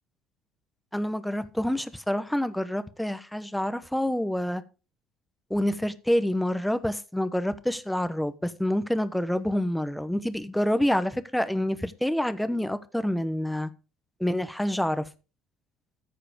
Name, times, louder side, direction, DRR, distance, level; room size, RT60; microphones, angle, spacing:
voice 1, 0.9-4.6 5.5-13.7 14.2-15.1, left 1 dB, 5° left, 1.0 m, -27 dB
13.5 x 5.0 x 5.1 m
supercardioid pair, 100°, 0 cm